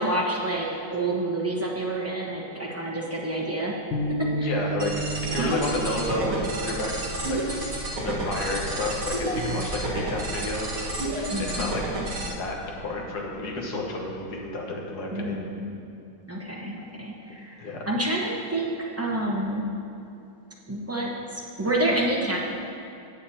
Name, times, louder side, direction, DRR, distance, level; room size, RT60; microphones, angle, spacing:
voice 1, 0.0-3.7 4.1-4.5 5.3-5.5 11.3-11.7 15.1-15.8 16.3-19.6 20.7-22.4, right 1 dB, 15° right, -4 dB, 0.5 m, -28 dB
sound 1, 3.9-10.3, right 2 dB, 85° left, 1.8 m, -35 dB
voice 2, 4.3-7.7 8.0-11.8 12.4-15.4 17.6-17.8, left 2 dB, 55° left, -1 dB, 1.7 m, -31 dB
sound 2, 4.8-12.3, right 1 dB, 75° right, 2.4 m, -30 dB
18.0 x 7.0 x 2.8 m, 2.7 s
omnidirectional pair, 2.2 m